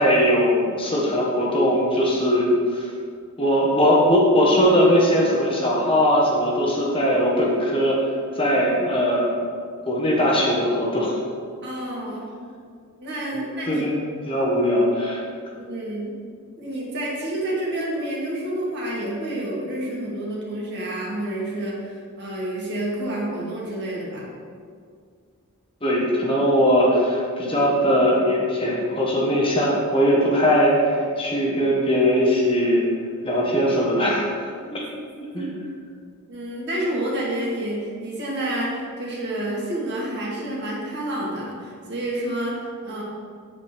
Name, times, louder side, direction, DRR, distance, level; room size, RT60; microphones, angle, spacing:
voice 1, 0.0-2.9 3.4-8.1 8.4-9.3 9.9-11.1 13.7-14.0 14.3-15.2 25.8-32.8 33.2-34.3 35.3-35.4, equal, 25° left, -3 dB, 1.3 m, -20 dB
voice 2, 11.6-12.2 13.0-13.8 15.6-16.1 16.6-24.3 34.7-34.8 35.1-35.5 36.3-42.5 42.8-43.0, right 1 dB, 50° right, -4 dB, 2.2 m, -29 dB
8.4 x 8.2 x 3.5 m, 2.1 s
head